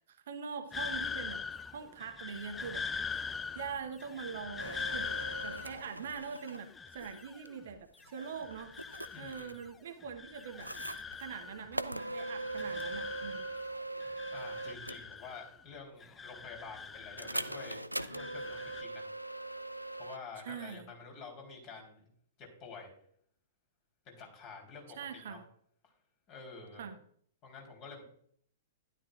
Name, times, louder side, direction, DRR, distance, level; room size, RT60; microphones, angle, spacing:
voice 1, 0.1-1.4 1.7-2.9 3.5-5.1 5.4-8.7 9.2-10.7 11.2-13.5 20.4-20.9 25.0-25.4 26.7-27.0, right 6 dB, 55° right, 7 dB, 1.0 m, -43 dB
sound 1, 0.7-7.7 8.0-9.7 10.0-11.8 12.0-13.7 14.0-15.7 16.0-17.7 18.0-18.8, left 5 dB, 15° left, 0.4 m, -42 dB
sound 2, 4.6-6.6 7.0-7.5 8.0-9.7 10.6-11.3 11.7-15.1 17.2-20.2, right 2 dB, 90° right, 0.4 m, -41 dB
voice 2, 9.1-9.6 14.3-17.8 18.1-19.1 20.0-22.1 22.4-22.9 24.1-25.4 26.3-26.9 27.4-28.0, left 4 dB, 35° left, 1 dB, 3.7 m, -49 dB
12.5 x 11.5 x 2.5 m, 0.63 s
figure-of-eight pair, 105°, 0 cm